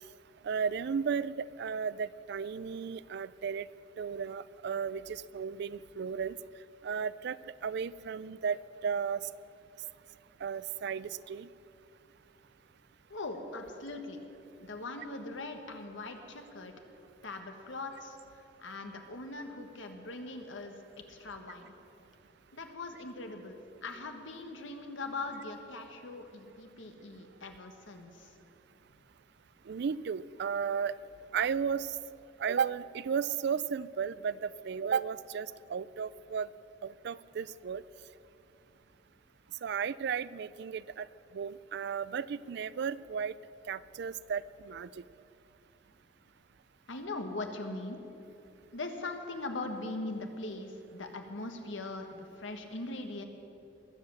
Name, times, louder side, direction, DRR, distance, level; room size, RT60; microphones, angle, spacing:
voice 1, 0.4-3.7 4.0-6.4 6.8-7.4 7.6-9.2 10.4-11.5 29.7-30.9 31.3-31.9 32.4-36.5 36.8-37.8 39.6-41.1 41.3-43.3 43.7-44.9, right 6 dB, 60° right, 19 dB, 0.4 m, -34 dB
voice 2, 13.1-14.2 14.6-16.8 17.2-18.2 18.6-20.8 21.1-21.7 22.5-28.3 46.9-48.0 48.7-53.2, left 2 dB, 80° left, 5 dB, 1.5 m, -41 dB
21.5 x 7.7 x 7.3 m, 2.8 s
head